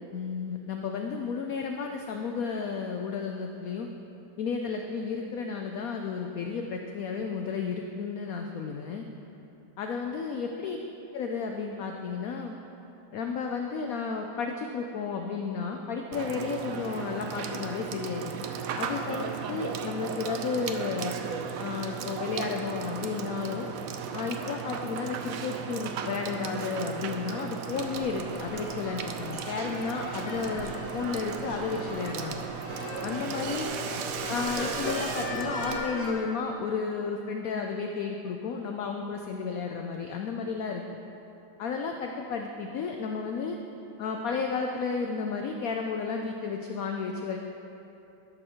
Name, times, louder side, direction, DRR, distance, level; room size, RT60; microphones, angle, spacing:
voice 1, 0.1-3.9 4.4-9.0 9.8-10.8 11.1-12.5 13.1-18.3 18.8-21.2 21.6-23.7 24.1-32.4 33.0-33.7 34.3-40.8 41.6-43.6 44.0-47.4, left 5 dB, 80° left, 3 dB, 0.7 m, -32 dB
Water / Water tap faucet / Sink (filling or washing), 16.1-35.8, right 7 dB, 80° right, 0.7 m, -36 dB
sound 1, 27.7-36.1, left 2 dB, 65° left, 1.8 m, -39 dB
11.5 x 4.4 x 6.3 m, 2.9 s
omnidirectional pair, 2.1 m